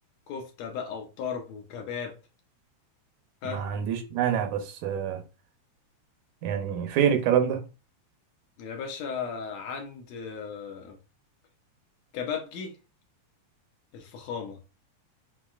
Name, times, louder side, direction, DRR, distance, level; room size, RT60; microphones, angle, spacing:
voice 1, 0.3-2.2 3.4-3.6 8.6-11.0 12.1-12.8 13.9-14.6, left 6 dB, 75° left, 1.8 m, -35 dB
voice 2, 3.4-5.2 6.4-7.6, right 9 dB, 80° right, 2.1 m, -26 dB
7.1 x 2.4 x 2.4 m
omnidirectional pair, 3.4 m